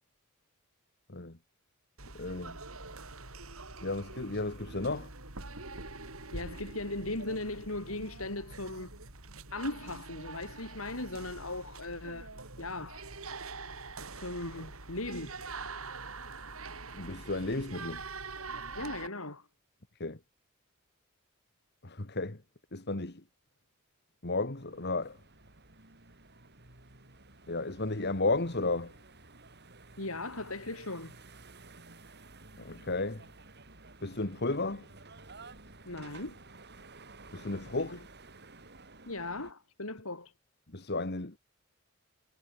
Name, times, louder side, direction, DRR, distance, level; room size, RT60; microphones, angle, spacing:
sound 1, 2.0-19.1, right 3 dB, 75° right, 5.6 m, -45 dB
voice 1, 2.1-2.6 3.8-5.1 16.9-18.0 20.0-20.2 21.8-22.4 22.7-23.2 24.2-25.2 27.5-28.9 32.6-33.2 34.0-34.9 37.3-38.0 40.7-41.4, left 2 dB, 50° left, 1.9 m, -33 dB
voice 2, 6.3-8.9 9.5-12.3 12.6-13.1 14.1-15.4 18.7-19.5 30.0-31.1 35.8-36.4 37.9-38.0 39.1-40.3, left 2 dB, 75° left, 6.2 m, -38 dB
sound 2, 24.3-39.5, right 3 dB, 50° right, 6.6 m, -53 dB
head